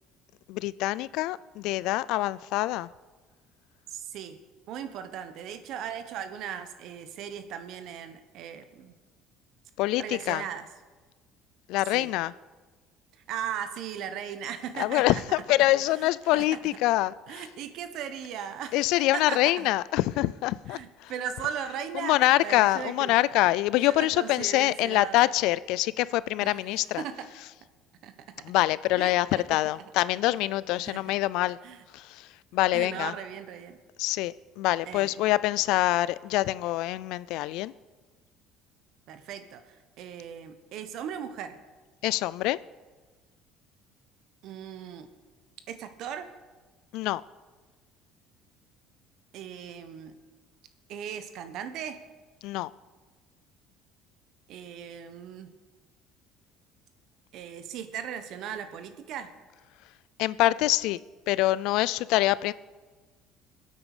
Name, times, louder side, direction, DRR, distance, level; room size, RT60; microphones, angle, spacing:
voice 1, 0.5-2.9 9.8-10.4 11.7-12.3 14.8-17.4 18.7-21.1 22.0-27.0 28.4-31.6 31.9-33.1 34.0-37.7 42.0-42.6 46.9-47.2 52.4-52.7 60.2-61.0 61.3-62.5, left 17 dB, 75° left, 19 dB, 0.4 m, -25 dB
voice 2, 3.9-4.4 4.7-8.9 10.0-10.7 11.9-12.1 13.3-15.2 15.9-16.1 16.3-16.5 17.3-18.8 19.1-19.7 20.7-23.2 23.9-25.3 26.4-26.7 27.0-27.3 28.0-28.1 29.0-29.6 30.8-31.0 31.6-31.8 32.7-33.8 34.9-35.1 39.1-41.6 44.4-45.1 45.7-46.3 49.3-50.1 50.9-52.0 54.5-55.5 57.3-59.3, right 8 dB, 65° right, 9 dB, 1.2 m, -37 dB
21.5 x 8.4 x 5.0 m, 1.3 s
cardioid pair, 105°, 0 cm